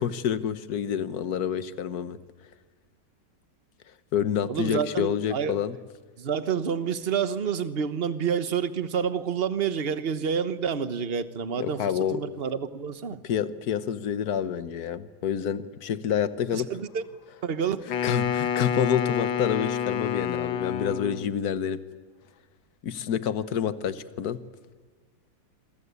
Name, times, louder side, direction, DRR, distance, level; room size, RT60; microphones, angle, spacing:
voice 1, 0.0-2.2 4.1-5.8 11.6-12.2 13.2-16.7 18.0-21.8 22.8-24.4, left 8 dB, 55° left, 14 dB, 1.5 m, -28 dB
voice 2, 4.5-5.6 6.2-13.2 16.5-17.0 17.4-17.8, right 7 dB, 35° right, 12 dB, 1.1 m, -28 dB
Wind instrument woodwind instrument, 17.9-21.4, left 8 dB, 80° left, 1.9 m, -28 dB
27.0 x 23.5 x 8.4 m, 1.5 s
omnidirectional pair, 2.1 m